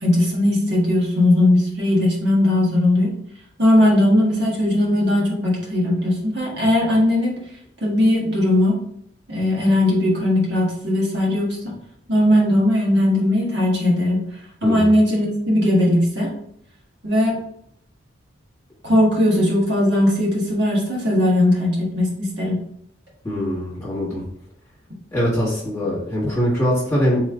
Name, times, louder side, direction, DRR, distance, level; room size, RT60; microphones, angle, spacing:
voice 1, 0.0-3.1 3.6-7.3 7.8-8.8 9.3-11.7 12.1-14.2 14.6-16.3 17.0-17.4 18.8-22.6, left 1 dB, 60° right, -4 dB, 1.6 m, -18 dB
voice 2, 14.6-14.9 23.2-24.2 25.1-27.2, equal, 15° left, -7 dB, 1.5 m, -22 dB
4.2 x 3.1 x 3.7 m, 0.70 s
head